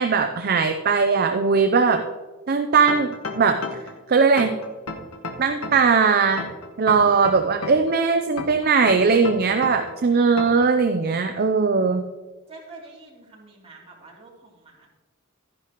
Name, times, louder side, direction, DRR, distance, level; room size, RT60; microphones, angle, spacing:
voice 1, 0.0-2.0 2.5-3.6 4.1-4.5 5.4-6.5 6.8-12.0, right 5 dB, 45° right, 6 dB, 0.6 m, -19 dB
sound 1, 2.9-4.0 4.4-5.9 6.4-7.9 8.4-9.9 10.4-10.7, left 3 dB, 85° left, 1.3 m, -33 dB
voice 2, 12.5-14.9, right 3 dB, 25° right, -4 dB, 3.0 m, -46 dB
12.5 x 10.5 x 3.0 m, 1.3 s
head